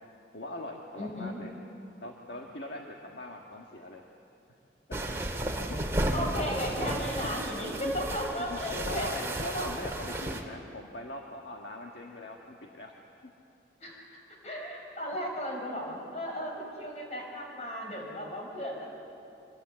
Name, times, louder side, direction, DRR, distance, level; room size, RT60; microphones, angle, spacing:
voice 1, 0.3-1.5 2.0-4.0 4.9-5.2 5.7-5.8 6.4-6.5 6.8-7.3 7.8-7.9 8.5-13.0, left 1 dB, 70° left, 1 dB, 1.7 m, -41 dB
voice 2, 1.0-1.4 5.1-5.2 6.1-9.1 9.5-9.7 10.3-10.4 13.8-18.9, equal, 40° left, 0 dB, 5.7 m, -35 dB
sound 1, 4.9-10.4, right 1 dB, 15° right, 2.0 m, -33 dB
25.5 x 21.0 x 8.4 m, 2.6 s
head